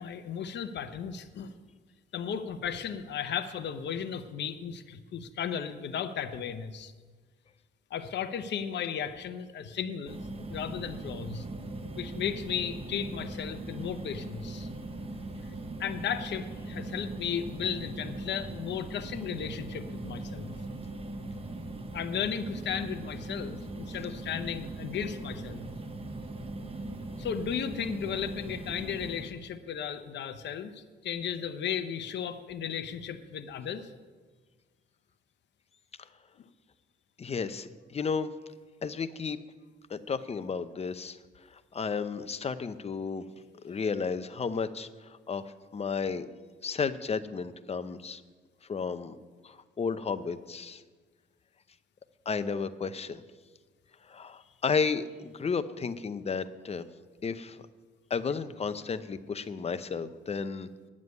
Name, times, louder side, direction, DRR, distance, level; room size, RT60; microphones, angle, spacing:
voice 1, 0.0-1.5 2.1-6.9 7.9-10.2 10.5-11.5 12.0-14.7 15.8-20.5 21.9-25.7 27.2-33.9, left 8 dB, 60° left, 9 dB, 0.8 m, -35 dB
sound 1, 10.1-29.3, right 2 dB, 30° right, 1.1 m, -40 dB
voice 2, 37.2-38.3 38.8-39.4 39.9-41.2 41.5-43.2 43.6-46.3 46.6-48.2 48.7-49.2 49.4-50.8 52.3-53.2 54.1-56.8 57.2-57.6 58.1-60.9, left 5 dB, 30° left, 13 dB, 0.7 m, -33 dB
9.6 x 7.4 x 9.4 m, 1.4 s
cardioid pair, 90°, 20 cm